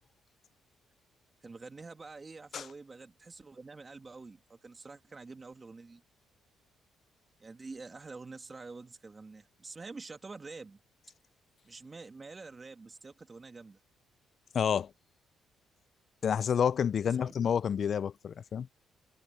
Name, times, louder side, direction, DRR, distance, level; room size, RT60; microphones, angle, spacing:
voice 1, 1.4-6.0 7.4-10.8 11.6-13.8 17.0-17.3, right 3 dB, 30° right, 2.2 m, -47 dB
voice 2, 14.5-14.9 16.2-18.7, left 7 dB, 55° left, 0.4 m, -29 dB
cardioid pair, 90°, 0 cm